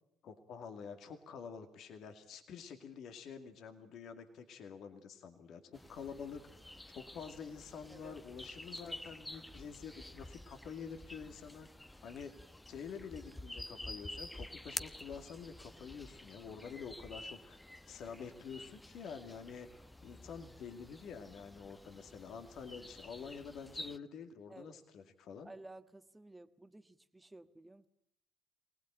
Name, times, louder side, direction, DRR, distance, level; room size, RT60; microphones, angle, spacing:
voice 1, 0.2-6.4 6.9-11.7 12.0-12.3 12.7-19.7 20.0-25.5, left 6 dB, 65° left, 7 dB, 2.3 m, -48 dB
sound 1, 5.7-24.0, left 1 dB, 10° left, 0.9 m, -50 dB
voice 2, 24.5-24.8 25.4-27.9, right 2 dB, 15° right, 10 dB, 1.5 m, -54 dB
24.5 x 19.0 x 9.0 m, 0.77 s
hypercardioid pair, 55°, 0 cm